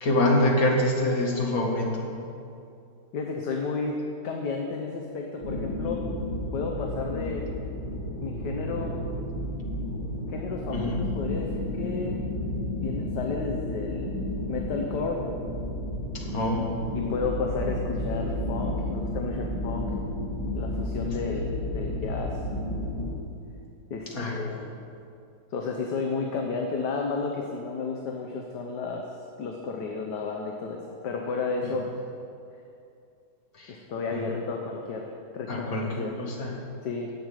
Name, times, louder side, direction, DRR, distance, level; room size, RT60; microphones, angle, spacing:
voice 1, 0.0-2.1 10.7-11.0 16.1-16.7 24.1-24.3 31.6-31.7 33.6-33.8 34.1-34.2 35.5-36.6, left 1 dB, 40° left, -1 dB, 2.2 m, -25 dB
voice 2, 3.1-4.0 4.2-6.0 6.5-7.5 8.2-8.9 10.3-12.2 12.8-14.1 14.5-15.2 16.9-19.9 20.4-22.4 23.9-24.8 25.5-29.1 29.4-31.8 33.7-36.2 36.8-37.1, left 4 dB, 55° left, 1 dB, 1.4 m, -32 dB
sound 1, 5.4-23.2, left 1 dB, 20° right, 3.0 m, -32 dB
11.5 x 7.8 x 9.0 m, 2.5 s
omnidirectional pair, 2.4 m